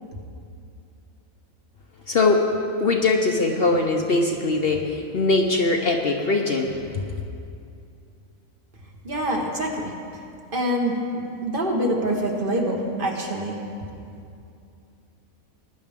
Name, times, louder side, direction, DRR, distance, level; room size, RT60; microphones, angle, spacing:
voice 1, 2.1-2.4 2.8-6.7, left 3 dB, 50° left, 2 dB, 0.9 m, -21 dB
voice 2, 9.0-9.9 10.5-11.0 11.4-13.6, right 1 dB, 40° right, 0 dB, 1.5 m, -25 dB
19.5 x 10.0 x 3.6 m, 2.5 s
omnidirectional pair, 1.4 m